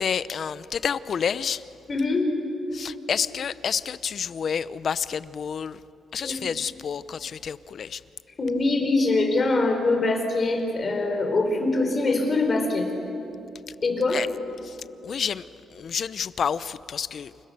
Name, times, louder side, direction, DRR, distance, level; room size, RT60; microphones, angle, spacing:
voice 1, 0.0-1.6 2.7-5.8 6.1-8.0 14.1-14.3 14.6-14.7 15.0-15.5 15.7-17.3, left 7 dB, 50° left, 15 dB, 0.7 m, -29 dB
voice 2, 1.9-2.3 6.2-6.5 8.4-12.9 13.8-14.2, left 2 dB, 35° left, 4 dB, 4.9 m, -23 dB
29.0 x 28.5 x 6.8 m, 2.9 s
cardioid pair, 115°, 0 cm